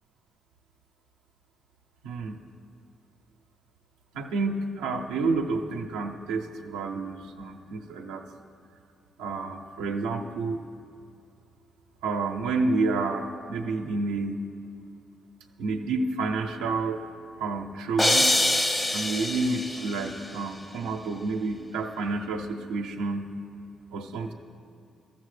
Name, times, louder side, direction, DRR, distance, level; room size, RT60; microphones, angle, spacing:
voice 1, 2.0-2.4 4.1-8.2 9.2-10.6 12.0-14.4 15.6-17.0 17.4-18.3 18.9-23.3 23.9-24.3, right 3 dB, 90° right, 2 dB, 0.5 m, -29 dB
sound 1, 18.0-20.1, left 1 dB, 30° left, 0.9 m, -24 dB
13.5 x 6.9 x 3.2 m, 2.4 s
supercardioid pair, 50°, 0 cm